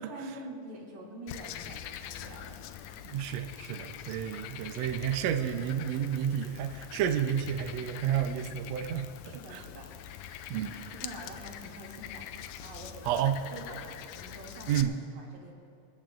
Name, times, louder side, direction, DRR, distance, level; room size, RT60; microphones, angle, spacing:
voice 1, 0.0-2.7 9.3-9.9 10.3-12.3 12.6-13.2 13.5-15.5, right 1 dB, 60° right, -3 dB, 3.6 m, -46 dB
Frog, 1.3-14.8, left 11 dB, 85° left, 1.7 m, -44 dB
voice 2, 3.0-9.1 9.5-9.6 10.5-10.7 13.0-13.4 14.7-14.9, right 9 dB, 85° right, 7 dB, 1.5 m, -30 dB
27.0 x 14.0 x 2.5 m, 2.6 s
omnidirectional pair, 3.8 m